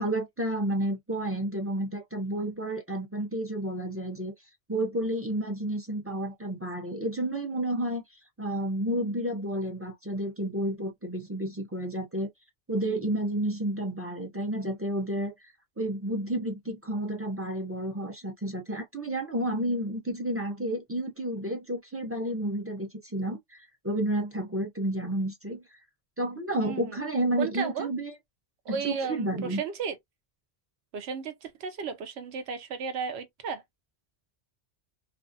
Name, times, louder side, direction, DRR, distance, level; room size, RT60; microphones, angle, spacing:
voice 1, 0.0-4.3 4.7-8.0 8.4-12.3 12.7-25.6 26.2-28.1 28.7-29.6, right 1 dB, 20° right, 0.4 m, -31 dB
voice 2, 26.6-27.0 27.4-27.9 28.7-30.0 30.9-33.6, right 6 dB, 80° right, 0.9 m, -34 dB
2.4 x 2.4 x 2.5 m
omnidirectional pair, 1.1 m